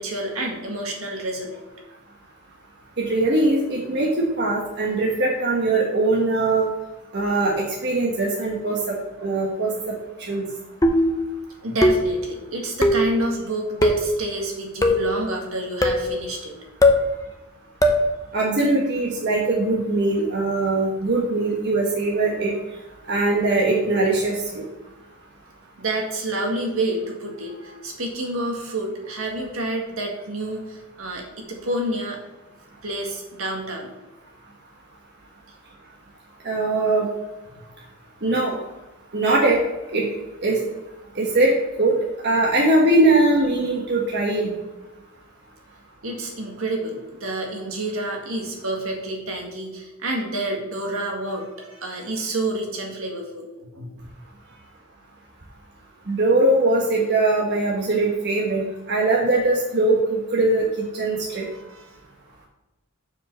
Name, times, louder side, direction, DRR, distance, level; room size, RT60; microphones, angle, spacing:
voice 1, 0.0-1.6 11.6-16.6 17.0-17.3 17.8-18.0 25.8-32.2 32.8-33.9 46.0-53.4 53.7-54.0 54.5-54.6 61.4-62.0, right 1 dB, 70° right, 1 dB, 1.8 m, -29 dB
voice 2, 3.0-6.7 7.1-9.9 10.3-10.5 18.3-22.5 23.1-24.6 36.4-37.0 38.2-38.5 39.1-39.6 39.9-40.0 40.4-40.7 41.2-41.9 42.2-44.5 56.1-60.6 60.9-61.4, right 2 dB, 50° right, -2 dB, 1.2 m, -21 dB
sound 1, 10.8-11.2 11.8-12.2 12.8-13.1 13.8-14.1 14.8-15.1 15.8-16.1 16.8-17.1 17.8-18.1, left 1 dB, 15° left, 0.7 m, -18 dB
7.2 x 4.9 x 6.8 m, 1.1 s
head